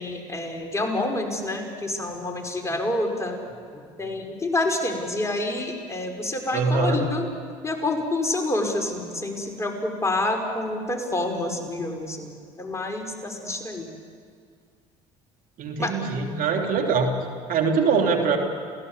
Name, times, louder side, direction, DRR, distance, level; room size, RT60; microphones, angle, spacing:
voice 1, 0.0-3.6 4.0-7.3 7.6-12.3 12.6-13.9 15.8-15.9, left 2 dB, 15° left, 2 dB, 5.3 m, -28 dB
voice 2, 6.5-7.0 15.6-17.2 17.5-18.4, right 5 dB, 60° right, 2 dB, 3.1 m, -23 dB
29.0 x 16.5 x 8.2 m, 2.1 s
hypercardioid pair, 75°, 17 cm